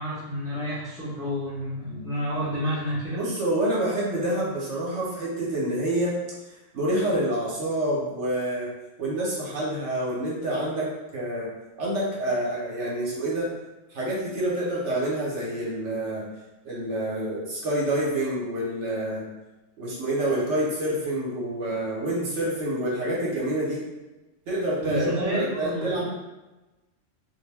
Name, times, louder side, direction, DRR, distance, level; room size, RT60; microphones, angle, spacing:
voice 1, 0.0-3.3 24.8-26.0, equal, 5° right, -8 dB, 0.7 m, -30 dB
voice 2, 3.2-6.2 6.7-8.7 9.0-11.5 11.8-13.5 13.9-16.2 16.6-19.3 19.8-23.8 24.5-26.0, right 1 dB, 75° right, -5 dB, 1.1 m, -27 dB
2.5 x 2.1 x 3.2 m, 1.1 s
omnidirectional pair, 1.3 m